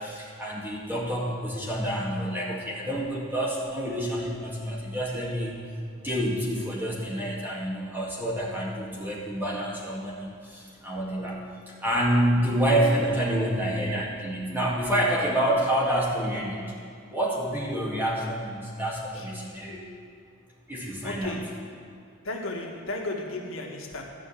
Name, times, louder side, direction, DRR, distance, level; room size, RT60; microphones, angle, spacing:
voice 1, 0.0-5.6 6.0-11.4 11.7-16.7 17.1-19.8 20.7-21.4, right 1 dB, 10° right, -5 dB, 2.2 m, -28 dB
voice 2, 21.0-21.5 22.2-24.0, left 2 dB, 80° left, 0 dB, 1.5 m, -34 dB
12.5 x 5.7 x 8.6 m, 2.3 s
head